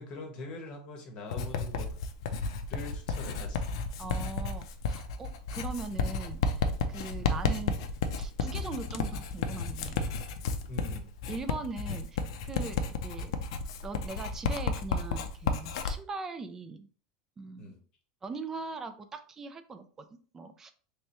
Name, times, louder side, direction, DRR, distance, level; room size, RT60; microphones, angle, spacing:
voice 1, 0.0-1.9 2.3-3.7 7.2-7.3 10.7-11.1 17.6-17.8, left 1 dB, 35° left, 3 dB, 0.8 m, -43 dB
Writing, 1.3-16.0, left 4 dB, 65° left, 0.5 m, -32 dB
voice 2, 4.0-6.4 6.9-7.8 8.2-10.1 11.3-12.1 12.4-13.4 13.8-16.9 17.4-17.7 18.2-20.1 20.3-20.7, right 3 dB, 15° right, 9 dB, 0.3 m, -40 dB
3.3 x 3.2 x 2.9 m, 0.41 s
supercardioid pair, 170°, 3 cm